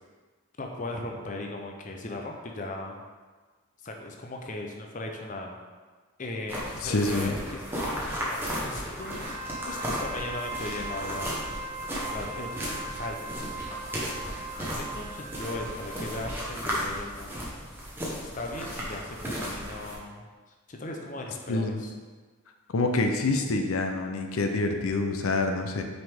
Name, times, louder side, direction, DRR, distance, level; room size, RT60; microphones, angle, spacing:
voice 1, 0.6-3.0 3.8-5.6 6.2-7.6 8.1-9.3 9.6-11.6 12.0-13.9 14.6-17.6 18.3-20.3 20.7-21.9, left 2 dB, 35° left, 1 dB, 0.6 m, -38 dB
sound 1, 6.5-19.9, equal, 10° right, 1.1 m, -35 dB
voice 2, 6.8-7.3 21.5-21.8 22.7-25.8, left 2 dB, 80° left, 5 dB, 0.6 m, -26 dB
Wind instrument woodwind instrument, 8.9-16.4, right 2 dB, 35° right, 0.8 m, -39 dB
6.1 x 5.1 x 3.6 m, 1.4 s
head